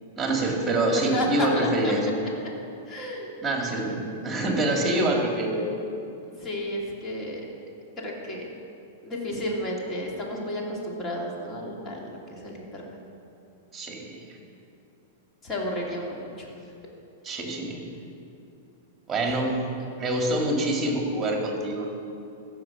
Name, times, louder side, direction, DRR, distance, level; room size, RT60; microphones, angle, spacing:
voice 1, 0.2-2.1 3.4-5.7 13.7-14.2 17.2-17.8 19.1-19.6 20.0-21.9, right 1 dB, 20° right, 1 dB, 2.2 m, -25 dB
voice 2, 0.9-1.9 2.9-3.3 4.9-5.1 6.4-7.4 8.0-8.5 9.0-12.8 15.4-16.5 19.2-19.4, left 1 dB, 25° left, -2 dB, 2.7 m, -32 dB
15.0 x 5.9 x 5.9 m, 2.7 s
hypercardioid pair, 115°, 0 cm